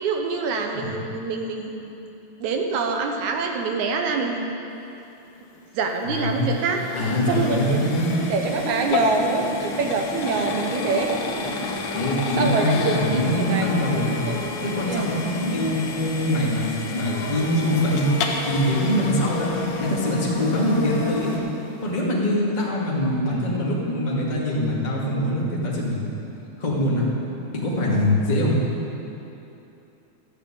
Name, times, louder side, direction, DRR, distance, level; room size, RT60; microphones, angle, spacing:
voice 1, 0.0-1.9 2.4-4.6 5.8-6.8 7.3-7.8 8.3-11.1 12.4-13.7 14.2-14.4 14.9-15.1, right 4 dB, 75° right, 3 dB, 2.4 m, -25 dB
voice 2, 0.7-1.1 6.0-6.5 6.9-8.1 11.9-14.2 14.6-18.1 18.5-19.5 19.8-21.4 21.8-26.0 26.6-27.1 27.5-28.6, left 1 dB, 15° left, -6 dB, 1.9 m, -23 dB
sound 1, 5.4-20.6, left 5 dB, 85° left, 2.5 m, -33 dB
sound 2, 6.9-21.4, left 2 dB, 50° left, 2.1 m, -32 dB
13.5 x 6.6 x 8.6 m, 2.9 s
omnidirectional pair, 3.4 m